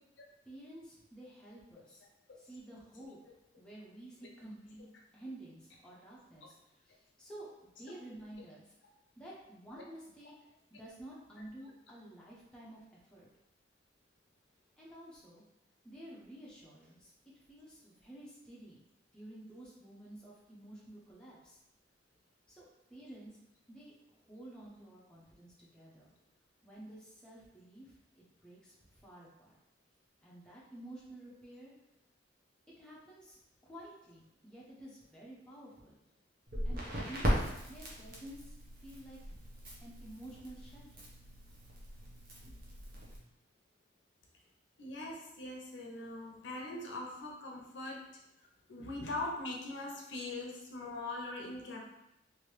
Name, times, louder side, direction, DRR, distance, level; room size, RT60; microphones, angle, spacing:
voice 1, 0.4-2.0 2.4-3.2 3.6-7.5 7.8-8.7 9.2-13.3 14.8-15.4 15.8-18.8 19.1-21.6 22.5-23.4 23.7-26.1 26.6-29.6 30.2-31.7 32.8-36.0 36.6-39.3 39.8-41.1, right 1 dB, 5° left, -6 dB, 0.6 m, -52 dB
Crackle, 36.5-43.2, equal, 50° right, 0.8 m, -38 dB
voice 2, 44.8-48.1 48.7-51.8, left 2 dB, 75° left, -1 dB, 0.7 m, -41 dB
3.1 x 2.6 x 3.1 m, 0.88 s
head